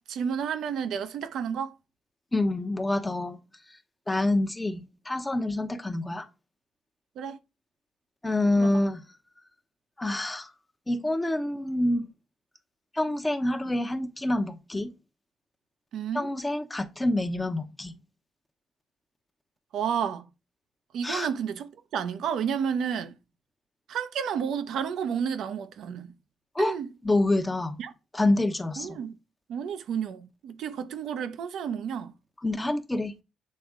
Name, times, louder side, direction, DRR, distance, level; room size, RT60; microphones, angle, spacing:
voice 1, 0.0-1.7 7.2-7.4 8.6-8.7 15.9-16.3 19.7-20.3 20.9-23.2 23.9-26.1 26.6-26.9 27.8-27.9 28.8-29.1 29.5-32.1, right 7 dB, 75° right, 0.7 m, -31 dB
voice 2, 2.3-3.4 3.7-3.8 4.1-6.3 8.2-9.0 10.0-10.5 10.9-12.1 12.9-14.9 16.1-17.9 21.0-21.3 26.5-26.7 27.0-27.8 28.1-29.0 32.4-33.1, left 1 dB, 15° left, 0.8 m, -27 dB
7.6 x 3.5 x 3.6 m
cardioid pair, 90°, 0 cm